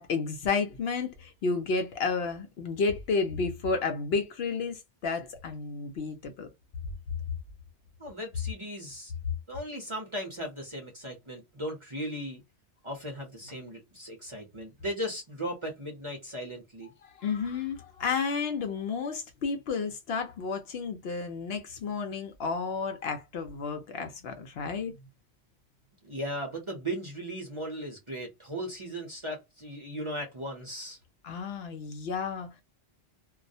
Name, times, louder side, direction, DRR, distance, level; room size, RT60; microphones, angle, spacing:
voice 1, 0.0-6.5 17.0-24.9 31.2-32.6, left 4 dB, 65° left, 0.8 m, -31 dB
voice 2, 8.0-9.1 9.5-12.4 12.8-16.9 26.0-31.0, equal, 30° right, 0.7 m, -37 dB
2.3 x 2.0 x 2.6 m
omnidirectional pair, 1.2 m